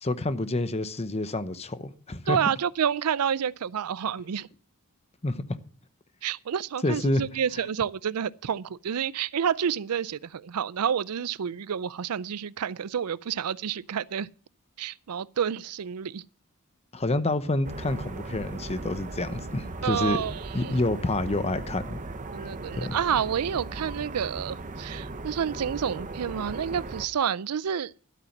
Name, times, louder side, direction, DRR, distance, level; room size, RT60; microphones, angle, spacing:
voice 1, 0.0-2.4 5.2-5.4 6.8-7.2 16.9-20.2 20.5-22.0 22.8-23.0, left 2 dB, 30° left, 0.8 m, -28 dB
voice 2, 2.3-4.5 6.2-14.3 14.8-16.2 19.8-20.7 22.3-27.9, right 8 dB, 90° right, 0.5 m, -29 dB
sound 1, 17.6-27.1, right 2 dB, 35° right, 0.9 m, -38 dB
12.5 x 8.4 x 5.9 m
head